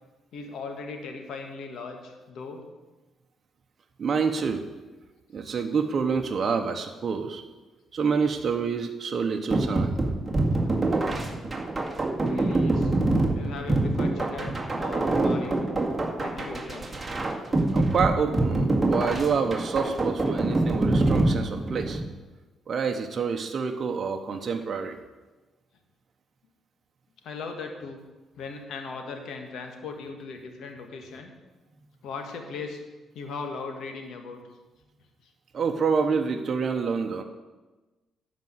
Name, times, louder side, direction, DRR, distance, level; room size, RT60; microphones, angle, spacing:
voice 1, 0.3-2.6 12.2-12.9 13.3-15.7 16.2-16.9 27.2-28.0 28.4-31.3 32.0-32.8 33.1-34.4 35.2-35.3, left 4 dB, 75° left, 4 dB, 1.7 m, -38 dB
voice 2, 4.0-4.6 5.3-7.4 7.9-9.9 17.7-22.0 22.7-24.9 35.5-37.2, right 5 dB, 45° right, 4 dB, 1.0 m, -27 dB
sound 1, 9.5-22.1, right 2 dB, 20° right, 2.0 m, -25 dB
12.0 x 5.3 x 7.9 m, 1.2 s
cardioid pair, 90°, 0 cm